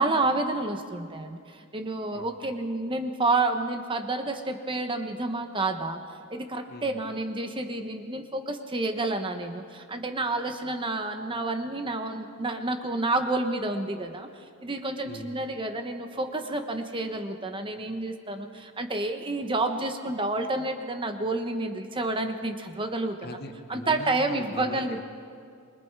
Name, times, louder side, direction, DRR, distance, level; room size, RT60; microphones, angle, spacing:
voice 1, 0.0-6.0 6.3-14.3 14.6-23.3 23.7-25.0, right 2 dB, 25° right, 5 dB, 1.2 m, -29 dB
voice 2, 6.7-7.0 15.1-15.3 23.2-25.0, left 1 dB, 45° left, 6 dB, 1.4 m, -41 dB
26.5 x 22.0 x 4.8 m, 2.3 s
head